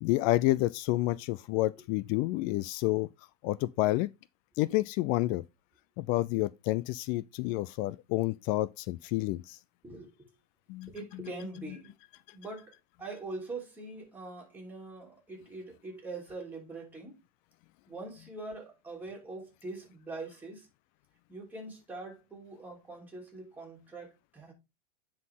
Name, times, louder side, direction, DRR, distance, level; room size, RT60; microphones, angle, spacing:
voice 1, 0.0-3.1 3.4-4.1 4.6-5.4 6.0-9.6 10.7-10.9, left 18 dB, 45° left, 0.4 m, -29 dB
voice 2, 9.8-10.3 10.9-11.9 12.3-12.7 13.0-17.2 17.9-20.7 21.3-24.5, right 2 dB, 10° right, 3.2 m, -43 dB
9.6 x 4.2 x 3.7 m
supercardioid pair, 125°, 20 cm